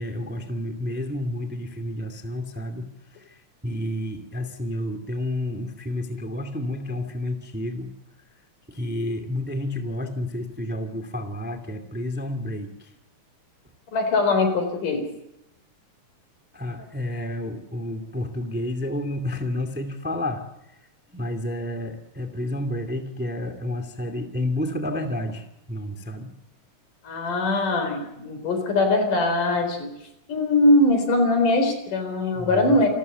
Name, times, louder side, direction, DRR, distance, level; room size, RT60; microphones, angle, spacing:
voice 1, 0.0-7.9 8.7-12.9 16.5-20.4 20.7-20.8 21.1-26.3 32.3-32.8, left 1 dB, 5° right, 7 dB, 1.7 m, -30 dB
voice 2, 13.9-15.0 27.0-29.9 30.3-32.9, left 2 dB, 75° left, 6 dB, 5.8 m, -21 dB
28.5 x 13.5 x 8.1 m, 0.86 s
omnidirectional pair, 3.7 m